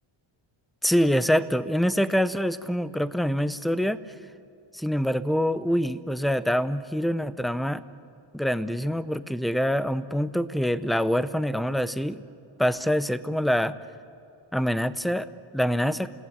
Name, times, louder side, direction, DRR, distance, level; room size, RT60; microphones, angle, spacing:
voice 1, 0.8-4.0 4.7-7.8 8.3-12.2 12.6-13.8 14.5-16.1, equal, ahead, 14 dB, 0.5 m, -25 dB
29.0 x 18.0 x 9.9 m, 2.5 s
wide cardioid pair, 145°, 48 cm